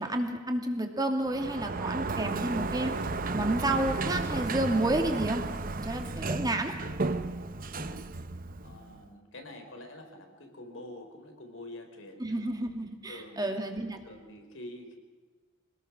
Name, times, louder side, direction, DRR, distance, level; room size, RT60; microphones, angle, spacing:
voice 1, 0.0-2.9 3.3-5.4 5.8-6.8 12.2-14.0, right 1 dB, 20° right, 4 dB, 2.5 m, -30 dB
Sliding door, 1.2-9.0, right 3 dB, 45° right, 0.9 m, -33 dB
voice 2, 7.7-8.1 8.6-12.4 13.1-13.6 14.0-14.9, left 1 dB, 75° left, 4 dB, 4.1 m, -46 dB
25.5 x 19.5 x 6.1 m, 1.4 s
head